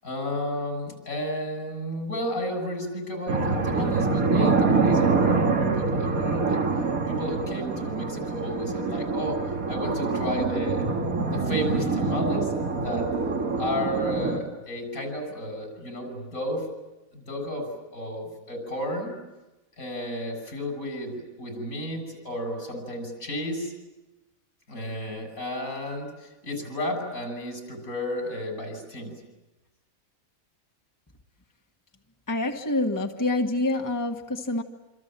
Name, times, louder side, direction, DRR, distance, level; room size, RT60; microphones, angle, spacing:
voice 1, 0.0-6.7 7.1-9.4 9.7-10.8 11.3-12.5 12.8-13.1 13.6-16.7 17.1-19.1 19.8-23.7 24.7-29.1, left 1 dB, 85° left, 5 dB, 6.9 m, -32 dB
sound 1, 3.3-14.4, right 4 dB, 85° right, 2.6 m, -25 dB
voice 2, 32.3-34.6, left 2 dB, 15° left, 3 dB, 1.5 m, -26 dB
27.0 x 26.5 x 7.5 m, 1.1 s
omnidirectional pair, 1.4 m